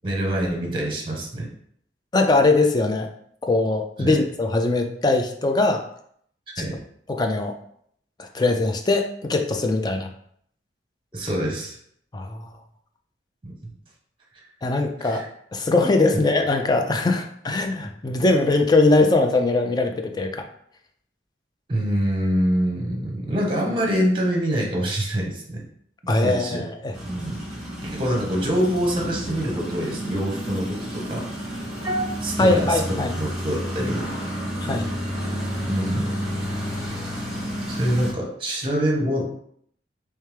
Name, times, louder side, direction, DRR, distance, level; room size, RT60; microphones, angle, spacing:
voice 1, 0.0-1.5 4.0-4.2 6.6-6.7 11.1-11.8 13.4-13.5 15.0-15.2 21.7-25.6 26.2-26.6 27.0-27.4 27.8-31.3 31.8-34.1 35.6-36.1 37.7-39.2, equal, 30° right, 0 dB, 0.9 m, -25 dB
voice 2, 2.1-3.1 3.4-5.8 6.6-6.7 7.1-7.5 8.3-10.1 12.1-12.4 14.6-15.2 15.5-20.4 26.1-26.9 32.4-33.1 34.6-34.9, left 2 dB, 20° left, 4 dB, 0.4 m, -21 dB
sound 1, 26.9-38.1, equal, 5° right, 1.6 m, -30 dB
3.3 x 3.2 x 3.3 m, 0.67 s
head